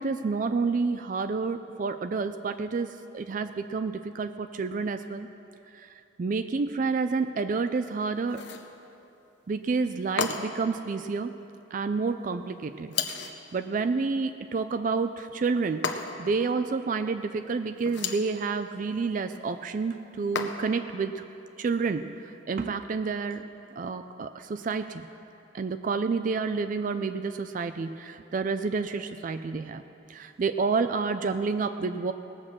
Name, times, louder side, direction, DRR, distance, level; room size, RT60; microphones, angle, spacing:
voice 1, 0.0-5.3 5.7-8.4 9.5-11.3 11.7-12.9 13.5-21.2 21.6-23.4 23.8-25.1 25.5-29.8 30.1-32.1, right 4 dB, 40° right, 10 dB, 0.3 m, -29 dB
sound 1, 8.3-8.7 10.2-10.7 12.9-13.4 15.8-16.4 17.8-18.3 20.3-20.9, left 5 dB, 60° left, 0.8 m, -32 dB
18.5 x 6.2 x 7.5 m, 2.8 s
head